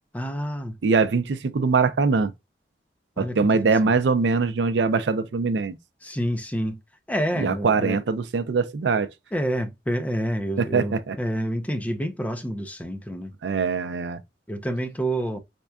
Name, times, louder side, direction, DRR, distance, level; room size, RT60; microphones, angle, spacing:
voice 1, 0.1-0.8 3.2-3.7 6.0-6.8 7.1-8.0 9.3-13.3 14.5-15.4, equal, 10° left, 0.4 m, -28 dB
voice 2, 0.8-2.3 3.2-5.8 7.4-9.1 10.6-11.2 13.4-14.2, right 4 dB, 80° right, 0.4 m, -22 dB
4.4 x 2.4 x 2.2 m
head